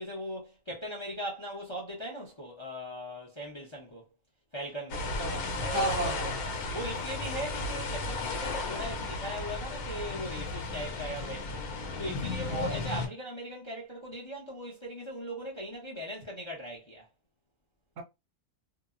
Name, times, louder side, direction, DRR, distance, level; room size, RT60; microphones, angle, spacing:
voice 1, 0.0-4.0 4.5-5.1 5.6-6.3 6.7-11.6 12.0-17.1, equal, 25° left, 0.6 m, -39 dB
sound 1, 4.9-13.1, left 3 dB, 80° left, 1.2 m, -34 dB
voice 2, 5.2-6.4 12.5-12.8 18.0-18.1, right 1 dB, 65° right, 0.9 m, -33 dB
2.8 x 2.1 x 2.3 m
omnidirectional pair, 1.6 m